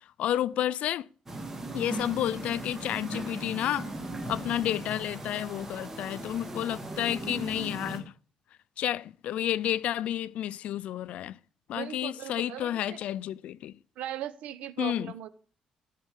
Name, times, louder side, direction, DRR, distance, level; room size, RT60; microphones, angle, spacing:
voice 1, 0.2-1.1 1.7-3.9 4.3-8.0 8.8-11.4 11.7-13.7 14.8-15.1, left 12 dB, 70° left, 0.5 m, -31 dB
sound 1, 1.3-8.0, right 1 dB, 15° right, 2.1 m, -38 dB
voice 2, 11.7-13.0 14.0-15.3, right 11 dB, 85° right, 1.0 m, -38 dB
13.0 x 5.5 x 8.3 m
cardioid pair, 145°, 2 cm